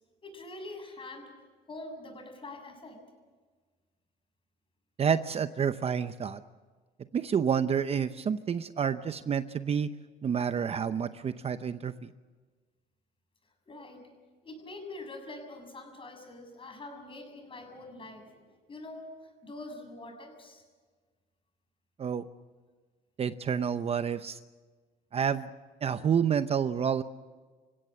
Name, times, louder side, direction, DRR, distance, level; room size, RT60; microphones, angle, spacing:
voice 1, 0.2-1.3 1.7-3.0 13.7-14.0 14.4-19.1 19.4-20.6, left 2 dB, 30° left, 4 dB, 7.0 m, -44 dB
voice 2, 5.0-6.4 7.1-9.9 10.2-12.1 22.0-22.2 23.2-24.4 25.1-25.5 25.8-27.0, right 7 dB, 35° right, 12 dB, 0.7 m, -29 dB
27.5 x 16.5 x 7.7 m, 1.4 s
cardioid pair, 110°, 17 cm